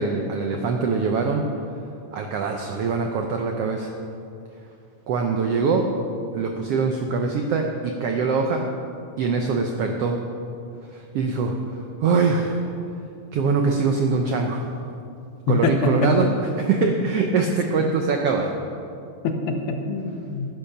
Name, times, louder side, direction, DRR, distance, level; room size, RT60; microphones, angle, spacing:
voice 1, 0.0-1.4 2.1-4.0 5.1-5.8 6.3-8.6 9.2-10.2 10.9-11.5 12.0-12.6 13.3-14.6 15.5-18.5, right 4 dB, 80° right, 3 dB, 1.4 m, -23 dB
voice 2, 15.5-16.3 19.2-20.5, left 3 dB, 75° left, 4 dB, 2.4 m, -24 dB
12.0 x 10.0 x 6.7 m, 2.6 s
omnidirectional pair, 3.7 m